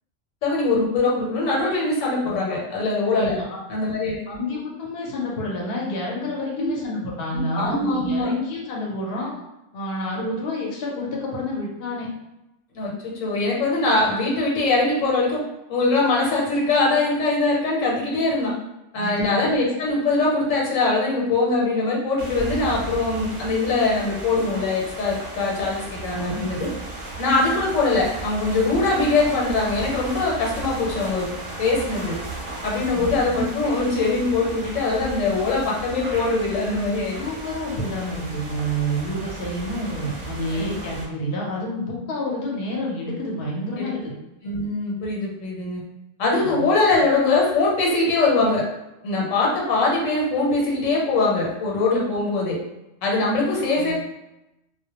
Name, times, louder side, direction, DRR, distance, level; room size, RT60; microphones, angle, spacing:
voice 1, 0.4-3.4 3.7-4.2 6.5-6.8 7.5-8.3 12.7-15.4 15.7-18.5 18.9-26.7 27.2-31.3 31.6-32.1 32.6-37.2 40.5-40.7 43.8-43.9 44.4-45.8 46.2-48.6 49.0-52.6 53.0-54.0, left 3 dB, 85° left, -3 dB, 1.1 m, -22 dB
voice 2, 3.1-3.5 4.3-9.3 9.7-12.1 18.9-19.3 26.1-26.5 32.9-33.1 37.2-44.0 46.4-46.6 53.5-53.9, equal, 60° left, -3 dB, 0.8 m, -29 dB
sound 1, 22.2-41.1, right 2 dB, 50° right, 0.7 m, -35 dB
2.2 x 2.1 x 2.8 m, 0.93 s
omnidirectional pair, 1.3 m